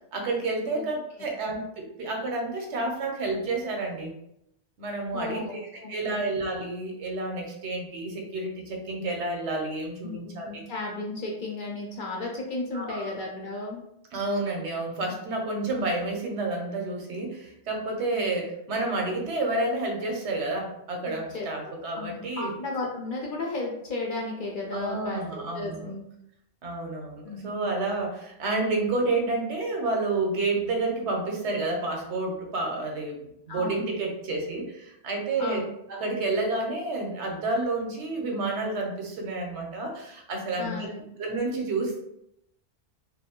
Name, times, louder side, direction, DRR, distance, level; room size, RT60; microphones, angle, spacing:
voice 1, 0.1-4.1 4.8-10.6 12.7-13.1 14.1-22.5 24.7-25.9 26.6-33.2 33.5-35.6 35.9-40.9 41.2-42.0, right 2 dB, 80° right, 1 dB, 1.0 m, -30 dB
voice 2, 5.1-6.3 10.0-13.8 15.1-15.2 18.1-18.2 21.1-21.5 22.0-26.0 27.3-27.6 33.5-33.8 35.4-35.6 40.6-41.0, left 2 dB, 60° left, -2 dB, 0.6 m, -34 dB
2.5 x 2.2 x 2.8 m, 0.78 s
omnidirectional pair, 1.2 m